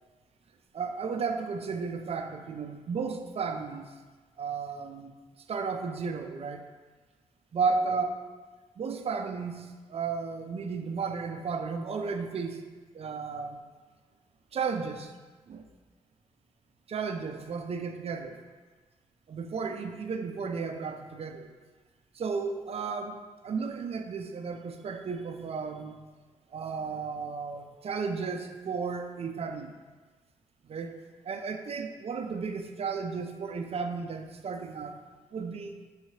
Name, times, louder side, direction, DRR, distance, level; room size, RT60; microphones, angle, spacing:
voice 1, 0.7-3.8 4.4-5.1 5.5-6.6 7.5-8.1 8.8-12.6 12.9-13.6 14.5-15.1 15.5-15.6 16.9-18.4 19.3-21.5 22.2-25.9 26.5-29.7 30.7-31.0 31.3-35.0 35.3-35.7, right 5 dB, 50° right, 5 dB, 0.5 m, -33 dB
5.6 x 2.9 x 2.8 m, 1.3 s
supercardioid pair, 50°, 13 cm